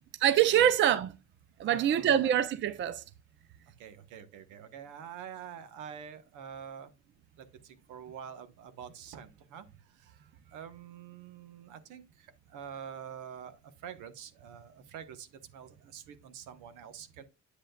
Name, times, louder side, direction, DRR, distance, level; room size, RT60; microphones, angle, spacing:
voice 1, 0.2-1.1 1.6-3.0, right 10 dB, 40° right, 0.6 m, -25 dB
voice 2, 1.6-2.3 3.8-6.9 7.4-10.2 10.5-17.2, right 8 dB, 90° right, 1.2 m, -46 dB
8.5 x 7.8 x 2.3 m
cardioid pair, 175°, 30 cm